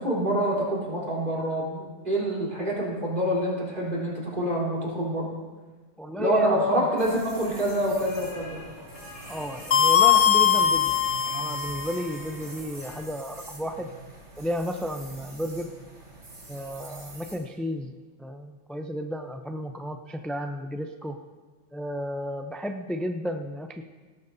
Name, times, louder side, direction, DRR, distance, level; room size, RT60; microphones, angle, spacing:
voice 1, 0.0-5.3 6.2-8.6, right 1 dB, 45° right, -6 dB, 3.9 m, -26 dB
voice 2, 6.0-6.8 9.3-10.9 11.3-13.9 14.4-15.7 16.5-17.9 18.2-21.2 21.7-23.8, equal, ahead, 5 dB, 0.3 m, -33 dB
sound 1, 6.9-13.0, left 1 dB, 75° left, 3.9 m, -46 dB
sound 2, 7.0-17.4, right 2 dB, 80° right, 3.9 m, -45 dB
sound 3, 9.7-12.1, left 8 dB, 60° left, 0.7 m, -21 dB
18.0 x 12.5 x 2.7 m, 1.4 s
omnidirectional pair, 1.2 m